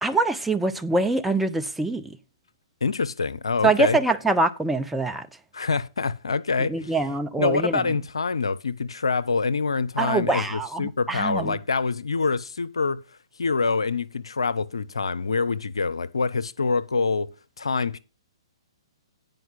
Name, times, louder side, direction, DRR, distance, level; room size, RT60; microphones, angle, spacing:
voice 1, 0.0-2.2 3.6-5.3 6.7-7.8 10.0-11.6, right 3 dB, 5° right, 0.7 m, -24 dB
voice 2, 2.8-4.0 5.5-7.0 7.4-13.0 13.4-17.3 17.6-18.0, left 4 dB, 75° left, 0.7 m, -25 dB
9.3 x 5.2 x 5.9 m
figure-of-eight pair, 125°, 3 cm